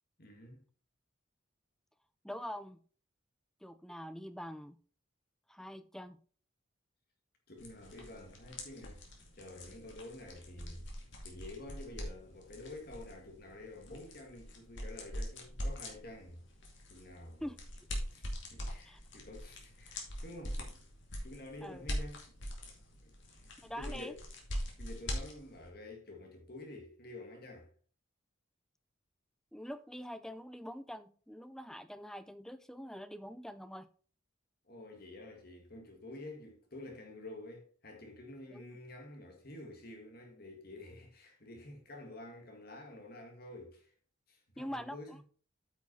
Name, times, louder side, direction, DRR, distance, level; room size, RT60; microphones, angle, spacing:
voice 1, 0.2-0.7 7.5-9.0 9.3-10.9 11.2-16.4 16.9-17.4 18.1-18.3 18.5-20.8 21.2-22.4 23.0-24.2 24.8-27.7 34.7-43.9 44.3-45.2, left 2 dB, 50° left, 1.8 m, -49 dB
voice 2, 2.2-2.8 3.6-4.8 5.5-6.2 17.4-17.6 18.9-19.0 21.6-21.8 23.6-24.1 29.5-33.9 38.5-38.6 44.6-45.2, equal, ahead, 0.4 m, -44 dB
sound 1, 7.6-25.7, equal, 65° left, 2.4 m, -43 dB
8.9 x 6.0 x 4.1 m
head